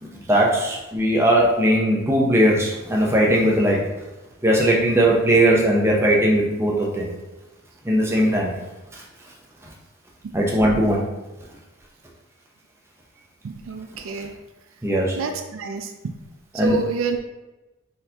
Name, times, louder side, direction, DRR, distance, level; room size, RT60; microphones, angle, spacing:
voice 1, 0.0-3.9 4.4-7.1 7.8-8.6 10.3-11.0 14.8-15.2 16.5-16.8, right 1 dB, 10° right, -3 dB, 0.6 m, -19 dB
voice 2, 13.4-14.3 15.2-15.9 16.5-17.2, right 4 dB, 65° right, 5 dB, 0.3 m, -27 dB
4.2 x 3.9 x 2.8 m, 1.1 s
head